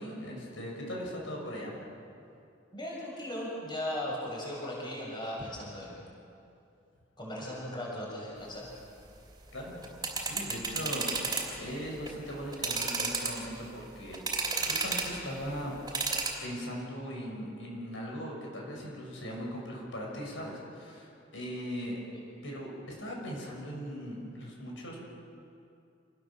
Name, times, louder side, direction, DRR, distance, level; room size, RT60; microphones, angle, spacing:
voice 1, 0.0-1.8 9.5-9.9 10.2-14.2 14.6-15.7 16.4-22.0 22.4-25.0, equal, 75° left, -1 dB, 6.7 m, -39 dB
voice 2, 2.7-6.0 7.2-8.7 22.1-22.2, left 1 dB, 25° left, -4 dB, 6.8 m, -37 dB
sound 1, 9.7-11.5 11.9-12.1 12.5-13.6 14.1-15.2 15.9-16.3, right 4 dB, 20° right, 3.8 m, -32 dB
27.5 x 19.5 x 7.4 m, 2.6 s
head